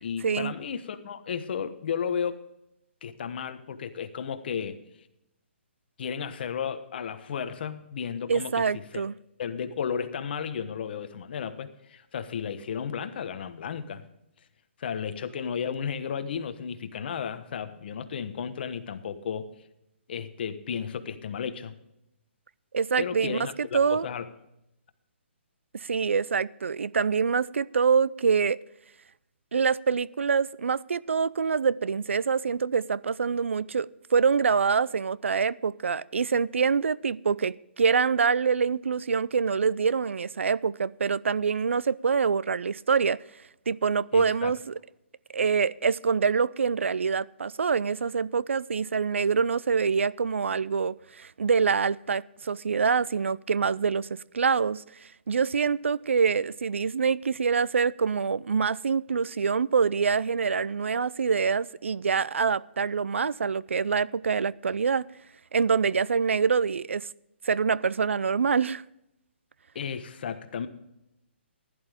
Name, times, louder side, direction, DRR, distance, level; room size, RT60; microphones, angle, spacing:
voice 1, 0.0-2.4 3.0-4.8 6.0-9.0 9.4-14.1 14.8-19.5 20.1-21.7 23.0-24.3 44.1-44.5 69.7-70.7, left 7 dB, 55° left, 1.2 m, -33 dB
voice 2, 8.3-9.1 22.7-24.1 25.7-28.6 29.5-43.2 43.7-44.7 45.3-54.1 54.3-54.8 55.3-65.1 65.5-67.1 67.4-68.8, right 5 dB, 80° right, 0.5 m, -25 dB
15.5 x 11.0 x 3.6 m
hypercardioid pair, 145°, 7 cm